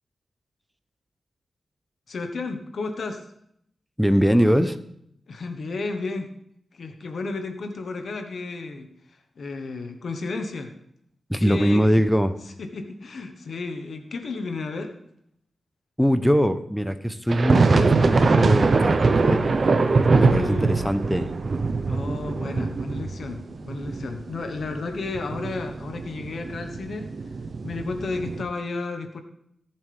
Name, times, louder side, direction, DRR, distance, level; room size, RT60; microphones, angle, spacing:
voice 1, 2.1-3.2 5.3-6.3 6.7-10.7 11.4-11.8 12.6-14.9 20.2-21.0 21.8-27.1 27.6-29.2, left 3 dB, 70° left, 7 dB, 1.2 m, -33 dB
voice 2, 4.0-4.8 11.3-12.4 16.0-19.6 20.1-21.3, equal, ahead, 10 dB, 0.9 m, -22 dB
sound 1, 17.3-28.4, right 3 dB, 60° right, 0.8 m, -22 dB
18.0 x 7.4 x 3.5 m, 0.72 s
cardioid pair, 50°, 0 cm